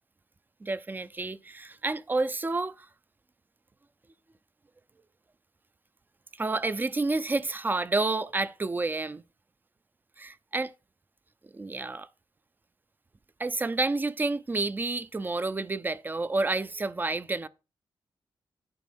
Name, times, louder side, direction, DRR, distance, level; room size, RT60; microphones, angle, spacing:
voice 1, 0.6-2.9 6.4-9.2 10.2-10.7 11.5-12.1 13.4-17.5, right 3 dB, 20° right, 0.6 m, -29 dB
10.5 x 4.2 x 6.2 m
wide cardioid pair, 120°, 9 cm